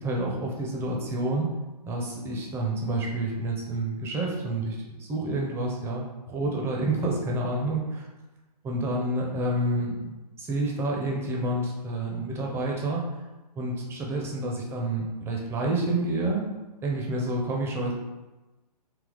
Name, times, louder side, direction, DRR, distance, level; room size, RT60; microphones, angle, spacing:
voice 1, 0.0-1.5 1.9-8.0 8.6-13.0 13.6-16.5 16.8-17.9, right 2 dB, 10° right, -1 dB, 0.6 m, -29 dB
3.9 x 2.8 x 3.4 m, 1.1 s
hypercardioid pair, 135°, 21 cm